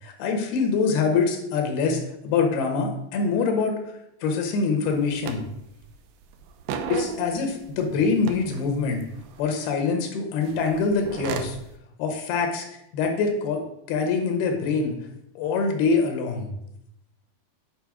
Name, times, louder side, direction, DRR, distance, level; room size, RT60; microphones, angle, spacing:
voice 1, 0.0-3.8 4.2-5.4 6.9-9.1 9.4-11.6 12.0-12.7 12.9-13.6 13.9-15.0 15.4-16.5, left 4 dB, 85° left, 3 dB, 3.1 m, -24 dB
sound 1, 4.9-5.0 5.2-6.0 6.2-7.8 8.2-9.4 10.4-11.6, right 6 dB, 80° right, 2.0 m, -34 dB
8.9 x 4.0 x 4.8 m, 0.79 s
omnidirectional pair, 4.4 m